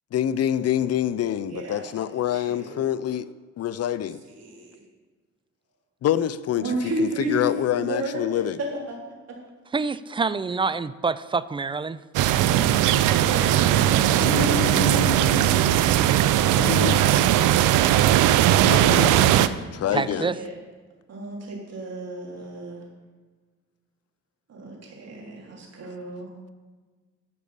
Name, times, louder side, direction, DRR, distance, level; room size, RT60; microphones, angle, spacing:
voice 1, 0.1-3.2 3.6-4.2 6.0-6.7 7.0-8.6 14.2-15.7 16.6-17.0 18.6-19.4 19.7-20.3, left 10 dB, 55° left, 16 dB, 0.5 m, -26 dB
voice 2, 1.5-2.8 4.2-4.8 6.6-7.5 7.8-9.0 12.9-14.4 16.6-16.7 17.0-17.4 19.4-20.5 21.1-22.8 24.5-26.3, right 2 dB, 55° right, -2 dB, 3.3 m, -33 dB
voice 3, 9.7-12.0 19.9-20.4, right 4 dB, 15° right, 16 dB, 0.3 m, -26 dB
sound 1, 12.1-19.5, right 12 dB, 90° right, 0.5 m, -19 dB
12.0 x 5.3 x 6.9 m, 1.4 s
cardioid pair, 90°, 30 cm